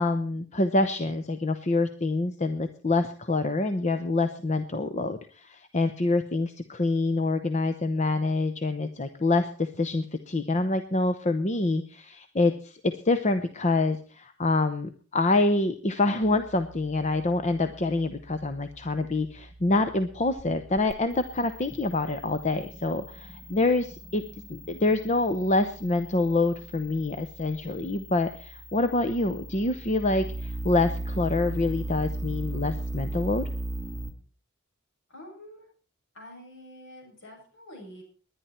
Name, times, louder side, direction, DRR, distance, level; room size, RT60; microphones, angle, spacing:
voice 1, 0.0-24.2 24.5-33.4, left 2 dB, 35° left, 9 dB, 0.8 m, -26 dB
sound 1, 16.2-34.1, right 1 dB, ahead, 1.9 m, -38 dB
voice 2, 35.1-35.7 36.1-38.0, left 1 dB, 60° left, 0 dB, 7.3 m, -47 dB
20.5 x 10.5 x 4.4 m, 0.41 s
head